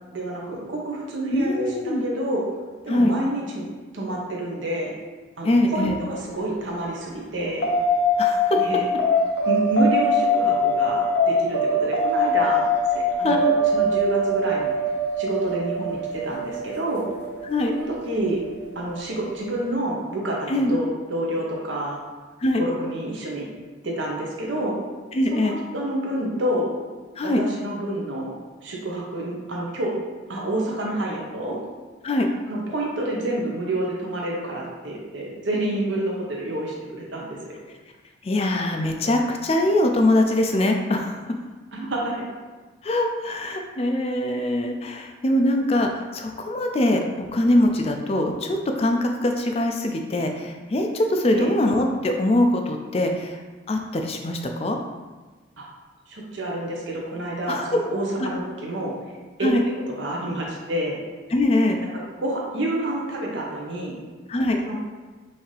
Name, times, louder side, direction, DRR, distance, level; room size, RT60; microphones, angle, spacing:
voice 1, 0.1-2.4 2.8-3.6 3.9-4.9 5.4-7.7 8.6-8.9 9.4-13.4 13.7-14.7 15.2-17.1 17.7-18.4 18.7-22.0 22.6-23.5 23.8-24.8 25.3-26.7 27.4-28.3 28.6-29.9 30.3-31.6 32.5-37.6 41.7-42.3 51.3-51.5 55.6-55.7 56.1-58.9 59.4-59.5 60.0-61.0 62.2-64.0 64.6-64.8, right 1 dB, 80° right, -2 dB, 1.0 m, -28 dB
voice 2, 1.3-2.0 2.9-3.2 5.4-6.0 8.2-8.6 13.2-13.5 17.4-17.7 20.5-20.8 22.4-22.6 25.1-25.6 27.2-27.4 32.0-32.3 38.2-41.2 42.8-53.4 53.7-54.8 57.5-57.8 58.2-58.4 59.4-59.6 61.3-61.8 64.3-64.6, left 1 dB, 30° left, 4 dB, 0.4 m, -22 dB
sound 1, 7.6-18.4, left 1 dB, 60° left, 0.8 m, -22 dB
5.6 x 2.7 x 3.3 m, 1.3 s
head